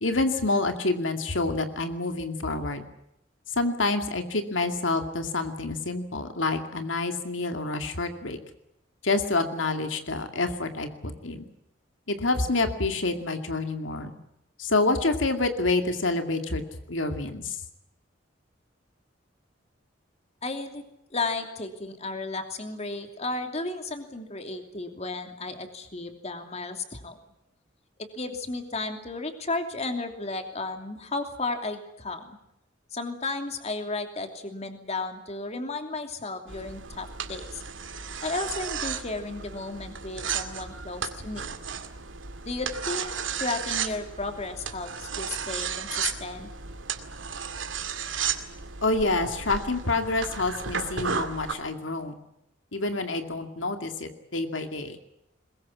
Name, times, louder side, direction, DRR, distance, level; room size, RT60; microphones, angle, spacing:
voice 1, 0.0-2.8 3.6-8.4 9.0-11.4 12.1-14.1 14.6-16.6 16.9-17.6 48.8-52.2 52.7-55.0, left 2 dB, 90° left, 6 dB, 2.4 m, -27 dB
voice 2, 20.4-20.8 21.1-27.2 28.0-32.3 32.9-37.6 38.2-41.5 42.4-46.5, left 3 dB, 35° left, 6 dB, 2.9 m, -34 dB
sound 1, 36.5-51.5, right 6 dB, 90° right, 2.2 m, -34 dB
22.0 x 21.5 x 8.5 m, 0.83 s
head